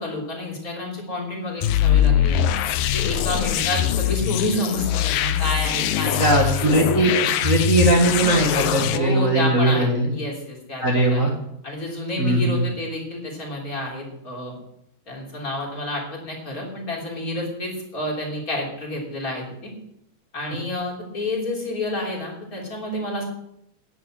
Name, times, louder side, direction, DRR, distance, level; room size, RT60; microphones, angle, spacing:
voice 1, 0.0-2.4 2.9-6.7 8.9-11.3 11.6-14.5 15.1-19.7 20.3-23.2, left 1 dB, 25° left, -3 dB, 3.3 m, -29 dB
sound 1, 1.6-9.0, left 11 dB, 80° left, 2.2 m, -22 dB
voice 2, 6.2-10.1 10.8-11.3 12.2-12.6, right 2 dB, 85° right, 0 dB, 0.7 m, -19 dB
10.0 x 9.8 x 6.2 m, 0.77 s
omnidirectional pair, 4.4 m